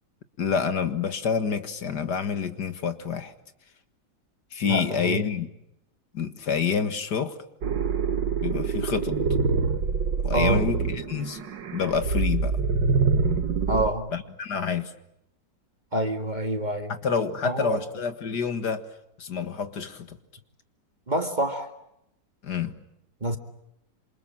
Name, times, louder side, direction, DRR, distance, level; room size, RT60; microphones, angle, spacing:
voice 1, 0.4-3.3 4.5-5.5 6.1-7.4 8.4-9.2 10.2-11.4 11.7-12.6 14.1-14.9 17.0-18.9 19.2-20.2 22.4-22.7, left 6 dB, 65° left, 2.2 m, -28 dB
voice 2, 4.6-5.4 10.3-10.7 13.7-14.1 15.9-16.9 17.4-17.9 21.1-21.7 23.2-23.4, right 1 dB, 25° right, 1.9 m, -27 dB
sound 1, 7.6-13.9, right 5 dB, 80° right, 2.2 m, -25 dB
27.5 x 27.0 x 7.4 m
omnidirectional pair, 1.9 m